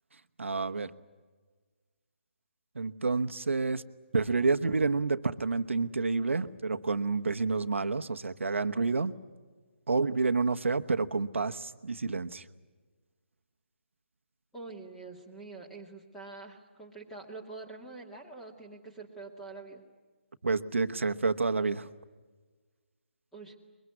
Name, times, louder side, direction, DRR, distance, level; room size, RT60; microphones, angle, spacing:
voice 1, 0.4-0.9 2.7-3.8 4.1-9.1 9.9-12.4 20.4-21.9, right 4 dB, 85° right, 9 dB, 1.2 m, -29 dB
voice 2, 14.5-19.8 23.3-23.5, right 3 dB, 5° left, 2 dB, 2.1 m, -45 dB
22.5 x 22.5 x 9.6 m, 1.4 s
hypercardioid pair, 165°, 7 cm